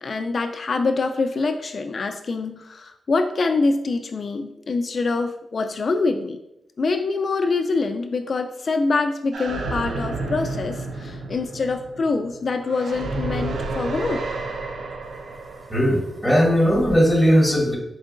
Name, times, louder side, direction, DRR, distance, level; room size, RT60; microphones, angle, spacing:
voice 1, 0.0-6.4 6.8-14.2, left 3 dB, 50° left, 6 dB, 0.3 m, -25 dB
sound 1, 9.3-16.9, right 3 dB, 85° right, 0.4 m, -31 dB
voice 2, 15.7-17.8, equal, 5° right, -2 dB, 1.2 m, -18 dB
4.3 x 3.8 x 2.5 m, 0.85 s
wide cardioid pair, 95°, 0 cm